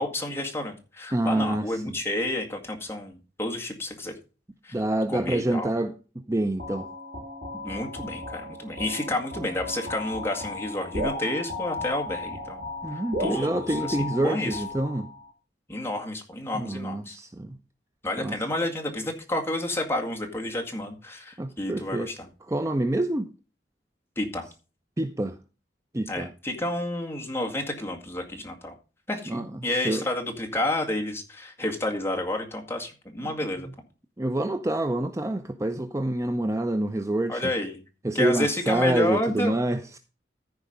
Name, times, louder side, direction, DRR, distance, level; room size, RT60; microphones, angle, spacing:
voice 1, 0.0-4.1 4.6-4.8 5.1-5.7 7.5-12.6 12.9-14.6 15.7-17.2 18.0-22.3 24.2-24.5 26.1-28.8 29.1-33.7 37.3-37.8 38.1-39.6, left 1 dB, 15° left, 2.0 m, -30 dB
voice 2, 1.1-1.7 4.7-5.9 6.3-6.9 12.8-15.1 16.5-17.6 18.2-18.3 21.4-22.1 22.5-23.3 25.0-25.4 25.9-26.3 29.3-29.5 29.8-30.0 33.2-33.3 34.2-37.4 38.0-40.0, right 1 dB, 15° right, 0.5 m, -27 dB
sound 1, 6.6-15.3, left 2 dB, 65° right, 2.3 m, -35 dB
14.5 x 4.8 x 5.2 m
head